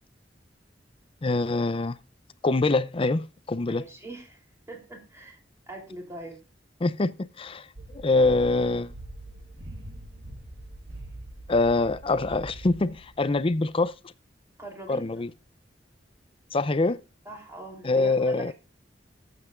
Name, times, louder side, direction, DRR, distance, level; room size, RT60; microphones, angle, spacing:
voice 1, 1.2-2.0 2.4-3.8 6.8-7.1 7.4-7.7 7.9-8.9 11.5-13.9 14.9-15.3 16.5-17.0 17.8-18.5, left 3 dB, 30° left, 0.5 m, -24 dB
voice 2, 3.7-4.4 4.7-5.4 5.7-6.4 14.6-15.1 17.3-18.5, right 1 dB, 15° right, 3.4 m, -42 dB
sound 1, 7.7-13.9, right 1 dB, 65° right, 1.5 m, -43 dB
19.0 x 7.8 x 2.5 m
head